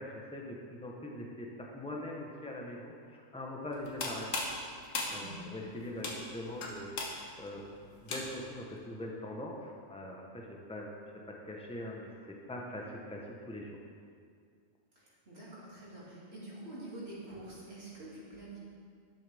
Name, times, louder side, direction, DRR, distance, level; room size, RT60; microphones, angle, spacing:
voice 1, 0.0-4.3 5.1-7.6 8.0-10.9 11.4-13.2 13.5-13.8, left 1 dB, 5° left, -1 dB, 0.8 m, -42 dB
sound 1, 3.7-8.6, left 2 dB, 85° left, 1.5 m, -39 dB
voice 2, 5.1-5.5 14.9-18.6, right 1 dB, 50° right, -8 dB, 2.8 m, -47 dB
12.0 x 7.4 x 3.5 m, 2.2 s
omnidirectional pair, 1.3 m